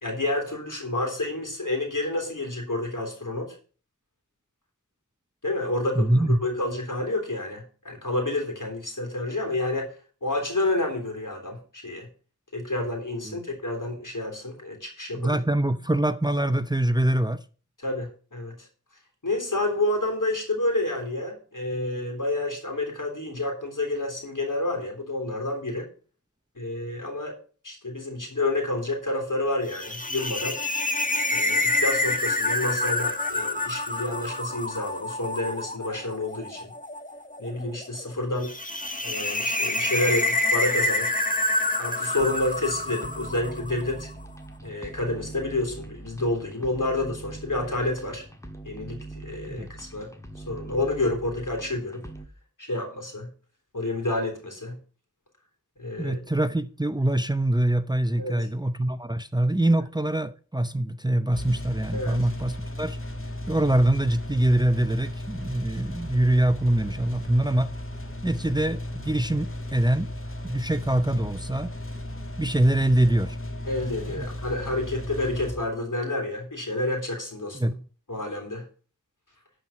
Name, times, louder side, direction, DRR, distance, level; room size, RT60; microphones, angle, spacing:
voice 1, 0.0-3.6 5.4-10.0 10.2-12.1 12.5-15.4 17.8-18.7 19.2-25.9 26.6-27.4 27.6-30.6 31.3-36.7 37.4-38.5 39.0-41.1 41.8-44.1 44.6-48.2 48.6-50.1 50.4-52.0 52.6-53.3 53.7-54.8 55.8-56.2 58.2-58.5 61.9-62.2 73.7-77.6 78.1-78.7, left 2 dB, 80° left, 3.5 m, -29 dB
voice 2, 6.0-6.4 13.3-13.4 15.1-17.4 49.5-49.7 56.0-63.0 63.5-67.7 68.2-70.1 70.4-71.7 72.4-73.4 74.2-74.3 77.5-77.8, right 1 dB, 15° right, 0.6 m, -24 dB
sound 1, 29.7-44.0, left 2 dB, 25° left, 1.2 m, -27 dB
sound 2, 42.2-52.3, right 2 dB, 10° left, 1.6 m, -42 dB
sound 3, 61.3-75.5, left 1 dB, 40° left, 1.9 m, -35 dB
11.5 x 4.6 x 7.2 m
wide cardioid pair, 45°, 31 cm